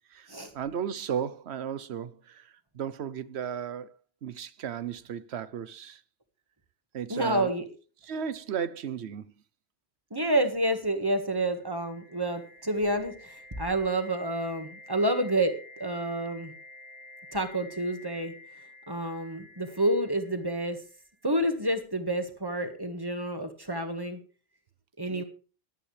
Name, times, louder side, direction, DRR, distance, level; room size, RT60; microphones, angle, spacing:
voice 1, 0.5-3.9 4.2-6.0 6.9-7.5 8.0-9.3 25.1-25.2, right 8 dB, 80° right, 1.0 m, -35 dB
voice 2, 7.1-7.7 10.1-16.5 17.3-18.3 18.9-20.8 21.2-24.2 25.0-25.2, right 1 dB, 20° right, 1.7 m, -29 dB
sound 1, 11.5-21.1, left 2 dB, 65° left, 1.8 m, -50 dB
17.0 x 11.5 x 3.3 m
omnidirectional pair, 1.1 m